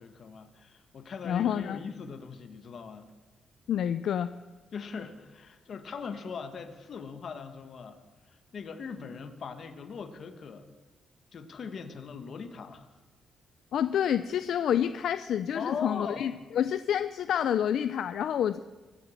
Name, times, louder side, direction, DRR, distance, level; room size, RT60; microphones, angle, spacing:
voice 1, 0.0-3.1 4.7-10.7 11.3-12.9 15.5-16.3, left 5 dB, 45° left, 8 dB, 1.4 m, -40 dB
voice 2, 1.2-1.8 3.7-4.3 13.7-18.6, left 9 dB, 65° left, 12 dB, 0.4 m, -28 dB
24.0 x 8.2 x 7.2 m, 1.3 s
cardioid pair, 170°, 0 cm